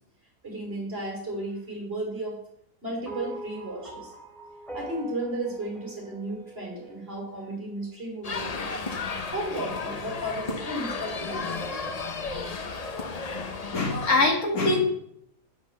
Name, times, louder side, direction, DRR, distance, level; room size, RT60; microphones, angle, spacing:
voice 1, 0.4-2.4 2.8-4.1 4.7-8.7 9.3-11.7, right 1 dB, 40° right, -1 dB, 3.0 m, -34 dB
sound 1, 3.1-7.5, right 2 dB, ahead, 2.3 m, -42 dB
sound 2, 8.2-14.3, left 4 dB, 45° left, 0.5 m, -33 dB
voice 2, 13.4-14.8, left 2 dB, 65° left, 1 dB, 2.1 m, -24 dB
6.4 x 6.4 x 6.6 m, 0.72 s
omnidirectional pair, 1.7 m